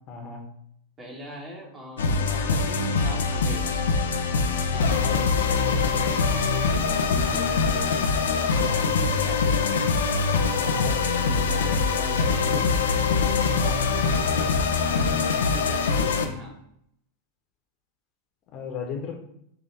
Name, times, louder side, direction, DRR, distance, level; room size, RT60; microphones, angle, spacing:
voice 1, 0.1-0.4 4.7-5.2 7.2-7.5 10.6-11.0 13.6-13.8 18.5-19.1, left 5 dB, 35° left, 1 dB, 1.2 m, -35 dB
voice 2, 1.0-3.8 7.1-9.4 11.2-12.7 14.0-16.6, equal, 20° right, -1 dB, 1.7 m, -41 dB
sound 1, 2.0-16.3, left 4 dB, 65° left, 0.7 m, -23 dB
6.9 x 3.1 x 4.7 m, 0.71 s
figure-of-eight pair, 90°, 0 cm